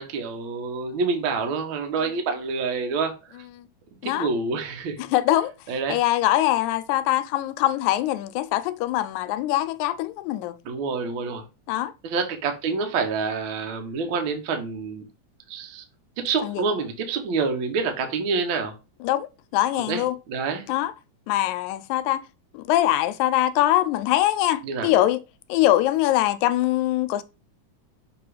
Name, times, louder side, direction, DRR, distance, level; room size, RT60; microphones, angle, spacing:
voice 1, 0.0-3.1 4.0-5.0 5.7-6.0 10.6-11.4 12.0-15.0 15.5-15.8 16.2-18.7 19.9-20.7 24.6-24.9, right 4 dB, 60° right, 1.5 m, -27 dB
voice 2, 5.0-5.5 5.9-10.6 11.7-11.9 16.4-16.6 19.0-19.3 19.5-20.2 20.7-20.9 21.3-22.2 22.5-25.2 25.5-27.2, left 14 dB, 90° left, 2.0 m, -23 dB
6.6 x 3.0 x 4.8 m
omnidirectional pair, 3.3 m